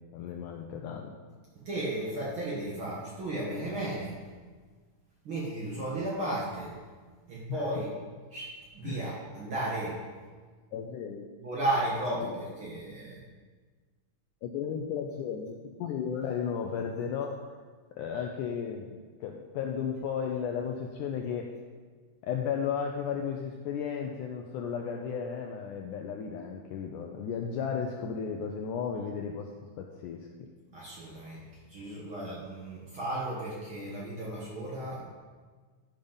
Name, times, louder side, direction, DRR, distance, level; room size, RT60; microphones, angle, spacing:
voice 1, 0.1-1.1 7.5-7.7 8.8-9.0 10.7-11.3 12.1-12.3 14.4-17.4 18.0-18.9 19.2-21.5 22.2-29.5 29.8-30.3, left 7 dB, 85° left, 2 dB, 1.8 m, -34 dB
voice 2, 1.7-4.2 5.2-6.7 7.3-7.9 8.3-10.0 11.4-13.2 30.7-31.4 31.7-35.0, right 1 dB, 50° right, -6 dB, 1.7 m, -34 dB
11.5 x 5.3 x 5.2 m, 1.5 s
omnidirectional pair, 4.2 m